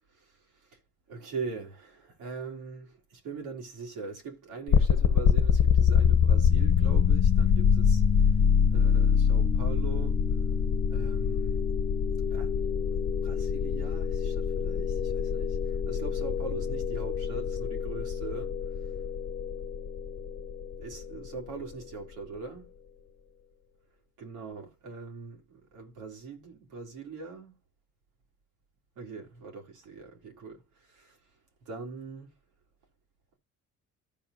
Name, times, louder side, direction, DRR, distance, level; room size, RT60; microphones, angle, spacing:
voice 1, 1.1-8.0 8.7-10.2 10.9-11.6 12.3-12.9 13.2-15.6 15.8-18.5 20.8-22.7 24.2-27.6 28.9-31.2 31.6-32.3, right 4 dB, 85° right, 3.3 m, -41 dB
sound 1, 4.7-21.6, left 7 dB, 55° left, 1.0 m, -25 dB
14.5 x 5.0 x 2.5 m
cardioid pair, 90°, 30 cm